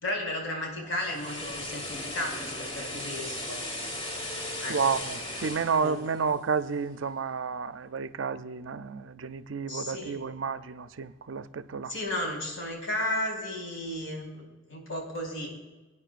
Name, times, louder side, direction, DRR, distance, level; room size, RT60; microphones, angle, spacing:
voice 1, 0.0-3.6 4.6-4.8 5.8-6.1 9.7-10.2 11.9-14.4 14.7-15.5, left 1 dB, 85° left, 4.0 m, -34 dB
sound 1, 0.8-7.0 7.3-7.5, left 1 dB, 30° left, 1.4 m, -37 dB
voice 2, 4.7-11.9, right 5 dB, 70° right, 0.5 m, -31 dB
23.0 x 9.5 x 2.5 m
head